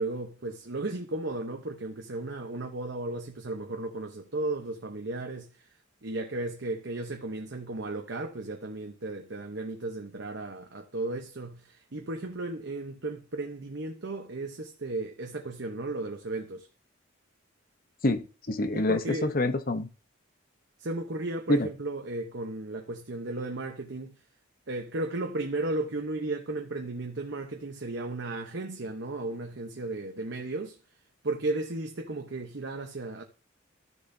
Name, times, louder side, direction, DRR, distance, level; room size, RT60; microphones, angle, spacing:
voice 1, 0.0-5.7 6.0-16.7 18.7-19.3 20.8-24.2 24.7-30.8 31.2-33.2, right 2 dB, 60° right, 0.9 m, -35 dB
voice 2, 18.0-19.9 21.5-21.7, left 2 dB, 45° left, 0.8 m, -27 dB
13.5 x 6.9 x 2.7 m
head